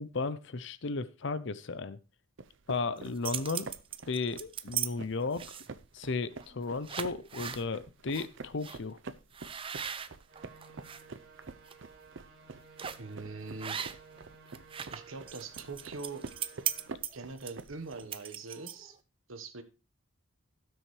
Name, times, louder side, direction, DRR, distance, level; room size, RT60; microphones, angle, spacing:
voice 1, 0.0-2.0 2.7-3.7 4.1-5.6 5.9-9.0, left 4 dB, 60° left, 14 dB, 0.6 m, -34 dB
sound 1, 2.4-18.1, right 3 dB, 65° right, 0.7 m, -48 dB
sound 2, 3.0-4.9 5.3-5.8 6.4-6.6 6.8-7.6 8.1-8.3 8.6-8.8 9.3-11.0 11.5-11.7 12.8-13.1 13.6-14.2 14.5-19.0, right 8 dB, 25° right, 0.5 m, -38 dB
sound 3, 10.3-16.9, right 4 dB, 50° right, 2.6 m, -56 dB
voice 2, 13.0-13.8 14.9-16.2 17.1-19.0 19.3-19.6, right 3 dB, 85° right, 8 dB, 1.3 m, -42 dB
16.5 x 6.4 x 3.2 m, 0.30 s
head